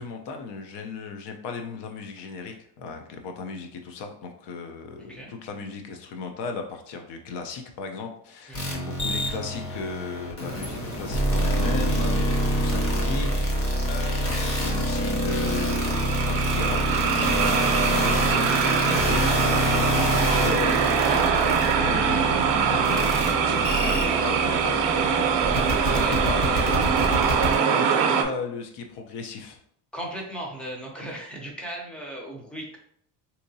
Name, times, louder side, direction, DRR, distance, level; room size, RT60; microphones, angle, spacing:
voice 1, 0.0-17.0 17.5-25.0 25.8-26.8 27.6-29.6, left 4 dB, 65° left, 4 dB, 0.7 m, -36 dB
voice 2, 5.0-5.3 8.5-8.8 14.3-14.5 17.4-17.8 21.1-21.6 25.8-26.4 29.9-32.8, right 1 dB, ahead, -1 dB, 0.5 m, -37 dB
sound 1, 8.5-27.5, equal, 30° left, 0.8 m, -26 dB
sound 2, 15.2-28.2, right 7 dB, 70° right, 0.7 m, -23 dB
3.6 x 2.9 x 2.7 m, 0.67 s
cardioid pair, 155°, 45 cm